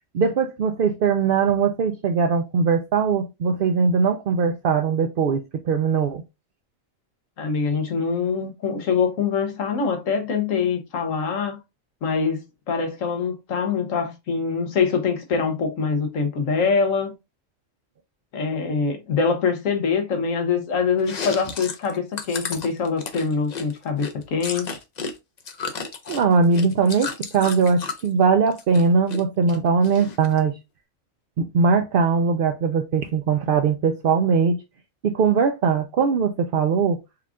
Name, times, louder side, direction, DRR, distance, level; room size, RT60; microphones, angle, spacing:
voice 1, 0.1-6.2 26.1-30.5 31.4-34.6 35.0-37.0, right 5 dB, 65° right, 0.6 m, -20 dB
voice 2, 7.4-11.6 12.0-17.1 18.3-24.8, left 5 dB, 75° left, 1.3 m, -24 dB
Chewing mastication, 21.0-25.1 25.4-28.1 28.5-29.2 29.5-30.4, left 5 dB, 45° left, 0.6 m, -33 dB
4.7 x 2.5 x 3.5 m
omnidirectional pair, 1.4 m